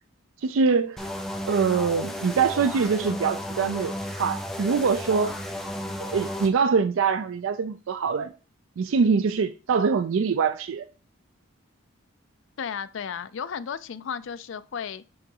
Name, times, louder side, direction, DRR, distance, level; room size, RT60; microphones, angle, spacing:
voice 1, 0.4-1.1 1.5-5.3 6.0-8.3 8.8-10.9, right 5 dB, 65° right, 0.4 m, -24 dB
sound 1, 1.0-6.5, left 1 dB, ahead, 0.6 m, -33 dB
voice 2, 12.6-15.1, left 7 dB, 60° left, 0.4 m, -34 dB
7.7 x 3.8 x 3.7 m
head